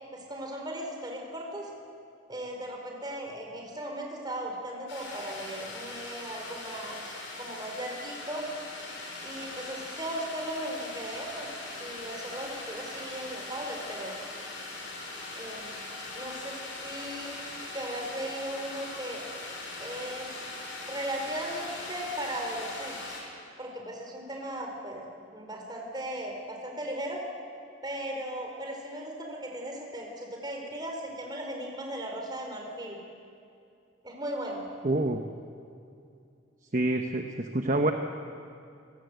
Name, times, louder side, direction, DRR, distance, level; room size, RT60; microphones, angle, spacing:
voice 1, 0.1-1.7 2.3-8.5 8.8-9.0 9.2-11.5 11.8-14.2 15.4-15.8 16.1-17.4 17.7-19.2 19.8-20.4 20.8-23.2 23.6-25.1 25.3-27.2 27.8-33.0 34.0-34.6, right 1 dB, 20° right, 1 dB, 4.3 m, -37 dB
sound 1, 4.9-23.2, left 2 dB, 75° left, 6.1 m, -41 dB
voice 2, 34.8-35.2 36.7-37.9, right 2 dB, 40° right, 4 dB, 1.1 m, -27 dB
28.5 x 17.0 x 8.2 m, 2.5 s
head